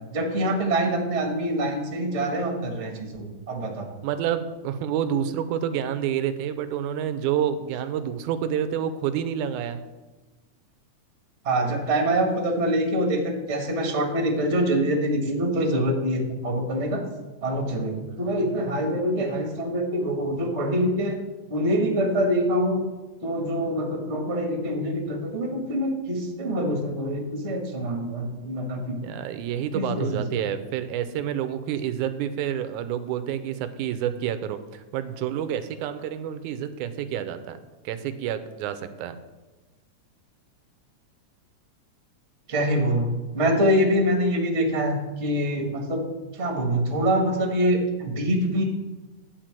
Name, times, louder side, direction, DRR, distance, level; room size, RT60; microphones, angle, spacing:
voice 1, 0.1-3.9 11.4-17.0 17.4-21.2 21.5-22.8 23.2-29.0 29.7-30.2 42.5-46.0 46.3-48.6, equal, 35° right, 2 dB, 1.1 m, -25 dB
voice 2, 4.0-9.8 18.0-18.3 29.0-37.6 37.9-39.2, right 9 dB, 90° right, 11 dB, 2.1 m, -29 dB
10.5 x 4.7 x 7.4 m, 1.2 s
omnidirectional pair, 3.5 m